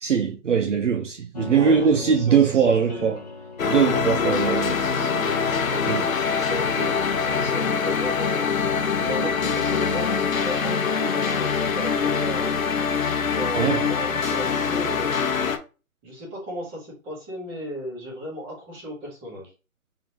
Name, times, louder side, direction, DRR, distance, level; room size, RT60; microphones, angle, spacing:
voice 1, 0.0-3.2 3.7-4.7 5.9-6.1 13.6-13.8, right 7 dB, 60° right, 0.7 m, -21 dB
sound 1, 1.3-15.0, left 3 dB, 30° left, 0.6 m, -40 dB
voice 2, 1.5-3.2 4.1-8.5 8.9-12.5 13.3-15.5 16.0-19.5, equal, 15° right, 1.6 m, -35 dB
sound 2, 3.6-15.6, left 6 dB, 70° left, 0.8 m, -24 dB
3.7 x 3.7 x 2.9 m
figure-of-eight pair, 150°, 43 cm